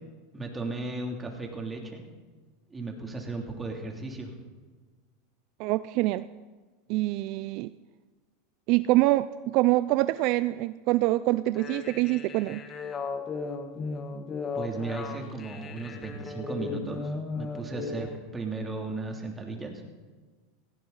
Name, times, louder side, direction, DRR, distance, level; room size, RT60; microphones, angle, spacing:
voice 1, 0.3-2.0 2.7-4.3 14.5-19.8, right 3 dB, 15° right, 1 dB, 2.9 m, -35 dB
voice 2, 5.6-6.2 6.9-7.7 8.7-12.6, right 18 dB, 55° right, 15 dB, 0.4 m, -25 dB
sound 1, 11.5-18.2, left 4 dB, 30° left, 1.6 m, -36 dB
17.5 x 16.0 x 4.0 m, 1.3 s
supercardioid pair, 115°, 0 cm